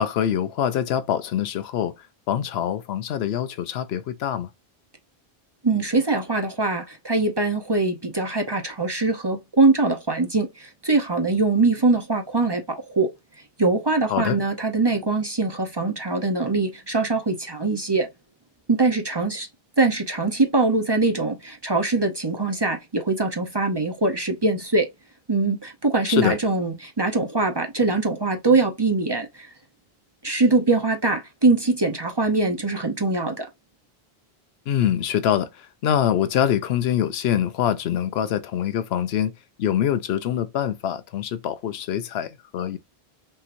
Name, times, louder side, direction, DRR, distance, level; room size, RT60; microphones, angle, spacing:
voice 1, 0.0-1.9 2.3-4.5 14.1-14.4 26.1-26.4 34.7-39.3 39.6-42.8, left 10 dB, 85° left, 0.8 m, -24 dB
voice 2, 5.6-13.1 13.6-18.1 18.7-19.5 19.8-24.9 25.3-29.5 30.2-33.5, right 3 dB, 30° right, 0.7 m, -22 dB
5.5 x 3.0 x 2.5 m
omnidirectional pair, 1.0 m